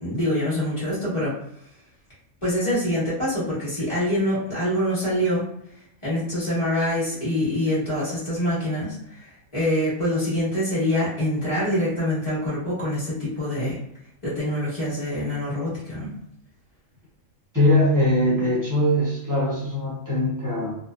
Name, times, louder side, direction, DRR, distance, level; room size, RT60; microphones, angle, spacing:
voice 1, 0.0-1.3 2.4-5.5 6.0-13.8 14.2-16.1, left 1 dB, 25° left, -9 dB, 1.3 m, -25 dB
voice 2, 17.5-20.8, left 1 dB, 15° right, -8 dB, 0.8 m, -21 dB
2.7 x 2.1 x 2.3 m, 0.74 s
omnidirectional pair, 1.4 m